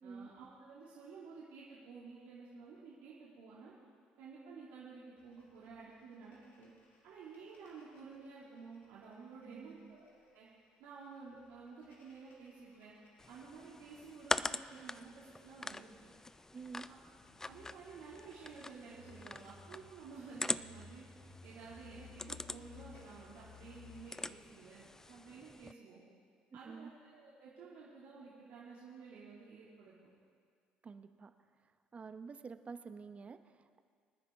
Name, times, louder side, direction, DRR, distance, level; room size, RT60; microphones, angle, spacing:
voice 1, 0.0-3.7 4.2-6.7 7.0-10.5 10.8-12.9 13.3-16.1 16.8-17.1 17.4-21.1 21.4-26.0 26.5-29.9, right 5 dB, 70° right, -7 dB, 2.3 m, -52 dB
sound 1, 5.2-24.4, left 5 dB, 60° left, 2.7 m, -61 dB
voice 2, 9.4-10.0 16.5-16.9 26.6-26.9 30.8-31.3 31.9-33.8, right 5 dB, 35° right, 10 dB, 0.8 m, -49 dB
sound 2, 13.2-25.7, left 2 dB, 15° left, 0.3 m, -44 dB
25.0 x 9.9 x 3.6 m, 2.1 s
hypercardioid pair, 65°, 4 cm